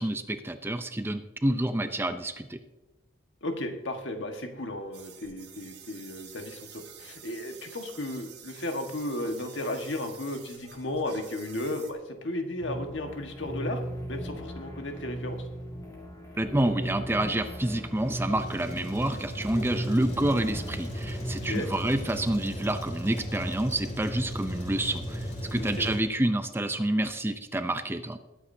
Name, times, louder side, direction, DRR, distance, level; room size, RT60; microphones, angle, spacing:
voice 1, 0.0-2.6 16.4-28.2, right 1 dB, 10° right, 9 dB, 0.5 m, -28 dB
voice 2, 3.4-13.8 14.1-15.5 21.4-21.7 25.5-25.9, left 1 dB, 70° left, 5 dB, 1.5 m, -34 dB
sound 1, 4.9-11.9, right 9 dB, 55° right, 1.4 m, -49 dB
sound 2, 12.6-21.5, right 1 dB, 20° left, 1.9 m, -37 dB
Truck, 17.2-26.0, equal, 40° left, 3.7 m, -37 dB
20.5 x 8.6 x 2.7 m, 1.1 s
head